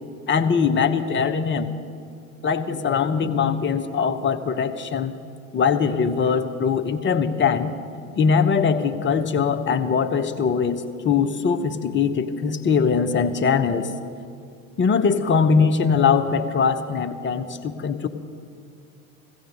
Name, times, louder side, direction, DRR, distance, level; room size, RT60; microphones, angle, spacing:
voice 1, 0.3-1.7 2.4-5.1 5.5-7.7 8.2-13.9 14.8-18.1, left 6 dB, 25° left, 10 dB, 1.0 m, -21 dB
16.0 x 16.0 x 5.3 m, 2.3 s
hypercardioid pair, 80°, 43 cm